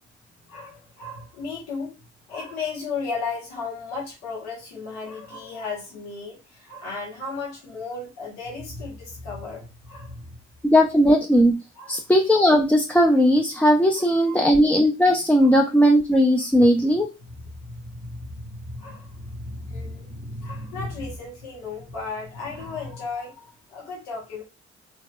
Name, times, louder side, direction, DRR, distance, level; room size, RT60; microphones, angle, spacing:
voice 1, 0.5-1.9 2.3-10.4 11.7-12.0 13.9-14.4 15.4-15.6 16.6-24.4, left 4 dB, 85° left, 1.2 m, -35 dB
voice 2, 10.6-11.6 11.9-17.1, equal, 5° left, 0.4 m, -18 dB
3.0 x 2.7 x 2.2 m
supercardioid pair, 60°, 30 cm